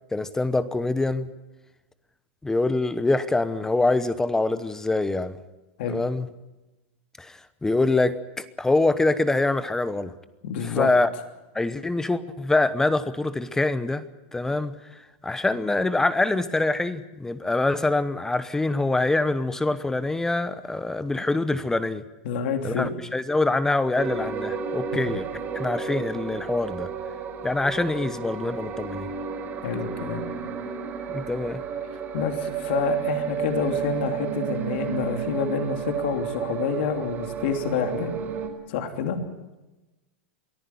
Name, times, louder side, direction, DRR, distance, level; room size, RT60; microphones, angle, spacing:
voice 1, 0.1-1.3 2.4-5.4 5.9-6.3 7.2-10.1 10.6-11.1 11.5-14.0 14.3-14.7 15.2-22.0 22.6-25.2 25.5-26.9 27.4-29.1 31.1-31.6, left 2 dB, 10° left, 13 dB, 1.0 m, -24 dB
voice 2, 10.4-10.9 22.2-22.9 29.6-30.2 32.1-38.1 38.7-39.2, left 6 dB, 65° left, 6 dB, 3.0 m, -28 dB
sound 1, 23.9-38.5, right 7 dB, 30° right, 4.2 m, -32 dB
23.5 x 14.5 x 9.5 m, 1.1 s
supercardioid pair, 130°, 6 cm